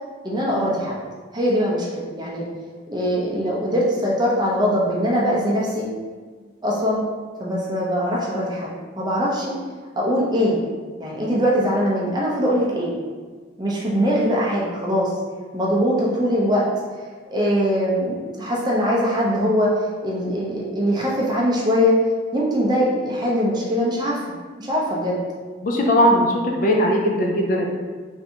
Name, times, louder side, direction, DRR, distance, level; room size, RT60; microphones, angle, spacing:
voice 1, 0.2-1.0 1.3-2.4 2.9-5.9 6.6-7.0 7.4-8.7 9.0-9.5 10.0-10.6 11.0-12.9 13.6-15.1 15.5-16.6 17.3-19.7 20.0-22.0 22.3-24.2 24.6-25.2, equal, 20° right, -5 dB, 0.5 m, -21 dB
voice 2, 25.6-27.7, equal, 45° left, 0 dB, 0.3 m, -19 dB
3.2 x 2.6 x 2.7 m, 1.5 s
head